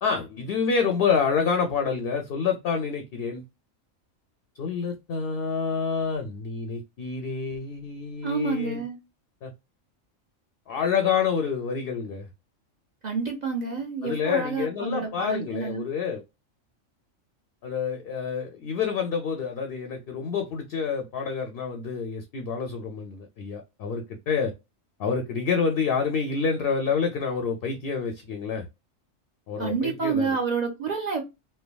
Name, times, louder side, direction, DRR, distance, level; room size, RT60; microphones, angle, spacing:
voice 1, 0.0-3.4 4.5-8.8 9.4-9.5 10.7-12.3 14.0-16.2 17.6-24.5 25.0-28.7 29.5-30.4, left 6 dB, 60° left, 0.6 m, -28 dB
voice 2, 8.2-9.0 13.0-15.9 29.6-31.2, right 5 dB, 45° right, 0.6 m, -28 dB
3.3 x 2.1 x 2.2 m
omnidirectional pair, 1.4 m